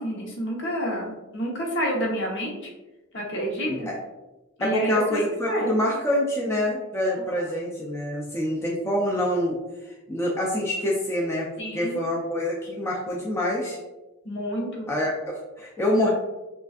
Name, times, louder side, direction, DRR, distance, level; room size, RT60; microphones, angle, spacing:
voice 1, 0.0-2.7 3.1-3.9 4.6-5.9 7.1-7.4 11.6-12.0 14.2-14.9 15.9-16.1, equal, 60° left, -2 dB, 1.1 m, -29 dB
voice 2, 4.6-9.6 10.1-11.5 11.7-13.8 14.9-16.1, left 1 dB, 10° left, -4 dB, 0.5 m, -26 dB
6.7 x 2.4 x 2.4 m, 1.1 s
head